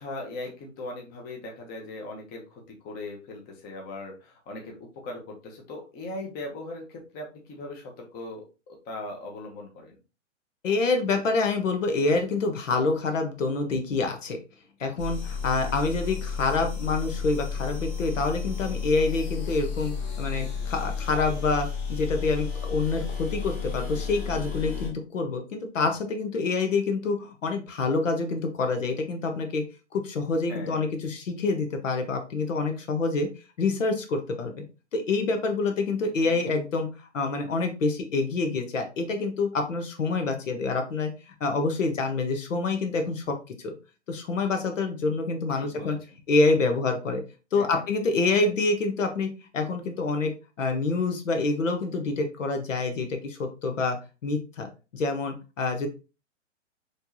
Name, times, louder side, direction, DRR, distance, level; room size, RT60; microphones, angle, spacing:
voice 1, 0.0-10.0 15.6-15.8 30.5-30.8 36.2-36.5 45.6-46.0 47.5-47.8, left 2 dB, 25° left, 1 dB, 1.0 m, -39 dB
voice 2, 10.6-14.4 14.8-29.6 29.9-33.3 33.6-34.5 34.9-36.9 37.1-43.7 44.1-46.0 46.3-47.2 47.5-50.3 50.6-54.0 54.2-55.9, left 3 dB, 80° left, 5 dB, 1.0 m, -27 dB
sound 1, 15.0-24.9, left 6 dB, 50° left, 2.4 m, -32 dB
4.4 x 3.2 x 2.7 m, 0.30 s
hypercardioid pair, 130°, 37 cm